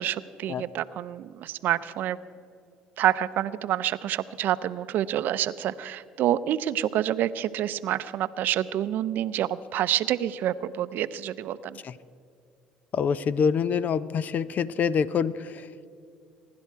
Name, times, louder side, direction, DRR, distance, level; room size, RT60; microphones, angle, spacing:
voice 1, 0.0-2.2 3.0-11.8, right 11 dB, 65° right, 15 dB, 0.5 m, -27 dB
voice 2, 12.9-15.7, left 6 dB, 50° left, 17 dB, 0.6 m, -26 dB
24.0 x 11.5 x 4.6 m, 2.4 s
supercardioid pair, 75°, 4 cm